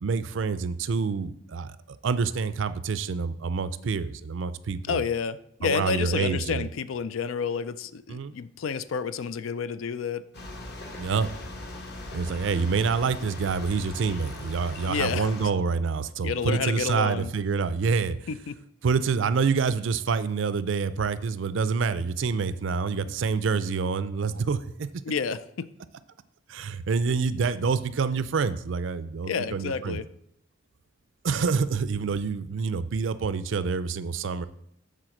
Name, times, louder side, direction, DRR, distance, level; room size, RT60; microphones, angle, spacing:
voice 1, 0.0-5.0 5.6-6.6 8.1-8.3 11.0-11.3 12.1-18.2 18.8-24.9 26.5-30.0 31.2-34.5, right 5 dB, 70° right, 14 dB, 0.4 m, -27 dB
voice 2, 4.9-10.3 14.9-15.3 16.2-17.3 18.3-18.5 25.1-25.7 29.3-30.1, left 6 dB, 85° left, 15 dB, 0.4 m, -30 dB
sound 1, 10.3-15.5, left 2 dB, 55° left, 1.2 m, -40 dB
7.5 x 3.9 x 6.4 m, 0.74 s
head